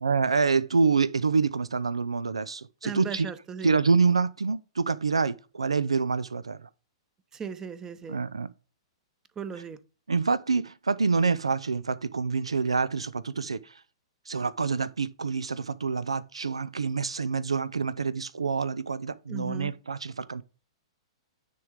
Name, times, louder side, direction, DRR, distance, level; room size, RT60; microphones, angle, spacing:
voice 1, 0.0-3.3 3.6-6.6 8.1-8.5 10.1-13.7 14.3-20.4, right 4 dB, 90° right, 0.4 m, -26 dB
voice 2, 2.8-3.7 7.3-8.2 9.4-9.8 19.3-19.7, right 6 dB, 20° right, 0.8 m, -37 dB
9.4 x 3.7 x 5.0 m
hypercardioid pair, 115°, 3 cm